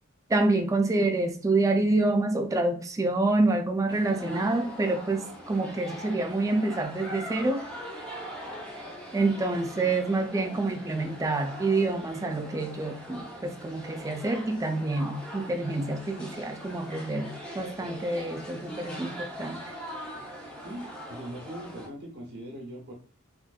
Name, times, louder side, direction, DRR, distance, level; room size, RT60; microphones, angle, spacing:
voice 1, 0.3-7.7 9.1-17.3 17.5-19.6, right 2 dB, 15° right, 0.3 m, -27 dB
sound 1, 3.9-21.9, equal, 5° left, 0.7 m, -41 dB
voice 2, 20.6-22.9, right 1 dB, 50° right, 1.1 m, -40 dB
3.6 x 2.5 x 2.3 m
head